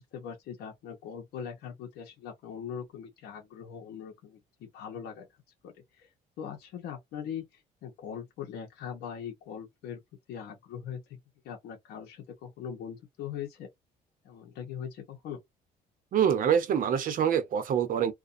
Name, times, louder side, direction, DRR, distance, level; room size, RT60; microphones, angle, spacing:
voice 1, 0.1-5.3 5.6-6.1 6.4-10.0 10.3-11.2 11.4-13.7 14.2-15.4, left 8 dB, 75° left, 0.8 m, -41 dB
voice 2, 16.1-18.1, right 8 dB, 55° right, 0.8 m, -25 dB
2.4 x 2.2 x 2.5 m
cardioid pair, 110°, 17 cm